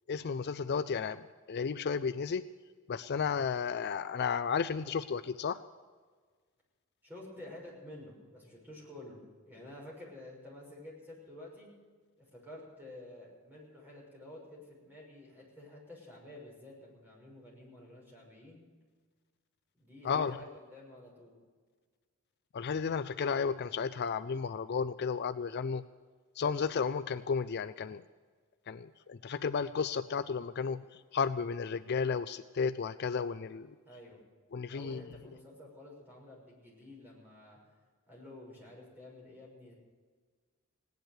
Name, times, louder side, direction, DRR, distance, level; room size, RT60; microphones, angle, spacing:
voice 1, 0.1-2.5 2.9-5.6 20.0-20.4 22.5-25.8 26.4-28.0 28.7-33.7 34.5-35.0, left 6 dB, 50° left, 12 dB, 0.4 m, -33 dB
voice 2, 7.0-11.7 12.2-18.6 19.7-21.4 33.9-34.2 34.7-37.6 38.1-39.7, left 1 dB, 10° right, -4 dB, 6.3 m, -50 dB
18.0 x 10.5 x 6.7 m, 1.5 s
head